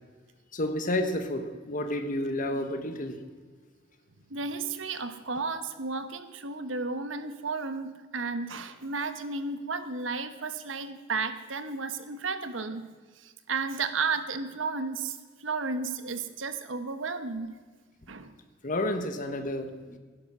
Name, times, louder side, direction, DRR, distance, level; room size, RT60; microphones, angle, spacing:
voice 1, 0.5-3.2 18.6-20.0, left 1 dB, 45° left, 7 dB, 1.4 m, -30 dB
voice 2, 4.3-12.8 13.2-17.5 18.1-18.4, right 4 dB, 90° right, 10 dB, 1.2 m, -33 dB
16.0 x 11.5 x 6.2 m, 1.5 s
head